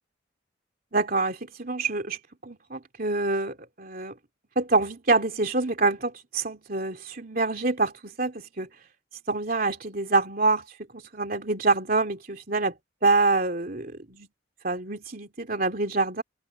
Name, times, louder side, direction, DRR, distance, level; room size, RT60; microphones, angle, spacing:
voice 1, 0.9-4.1 4.5-8.7 9.3-10.6 10.9-12.7 13.0-14.3 14.6-16.2, right 3 dB, 50° right, 3.1 m, -26 dB
open air
head